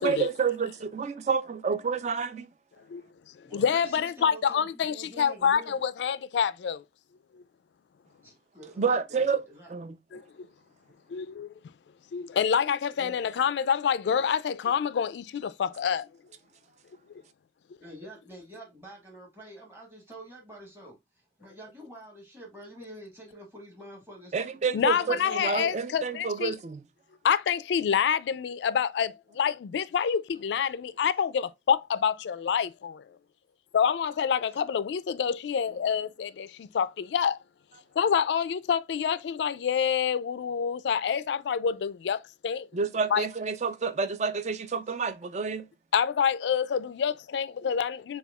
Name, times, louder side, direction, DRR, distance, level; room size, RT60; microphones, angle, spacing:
voice 1, 0.0-2.5 8.8-9.4 9.7-10.0 24.3-26.8 42.7-45.7, right 5 dB, 40° right, 0.4 m, -29 dB
voice 2, 2.9-6.8 7.3-7.4 10.1-10.5 11.1-11.5 12.1-16.1 24.7-26.5 27.2-33.2 33.7-37.4 38.0-42.7 43.1-43.3 45.9-48.2, left 7 dB, 75° left, 0.3 m, -27 dB
voice 3, 3.4-5.8 8.2-10.0 13.0-13.2 17.8-21.0 21.4-24.3 24.8-25.7, right 1 dB, 15° right, 1.4 m, -47 dB
6.9 x 2.3 x 2.2 m
head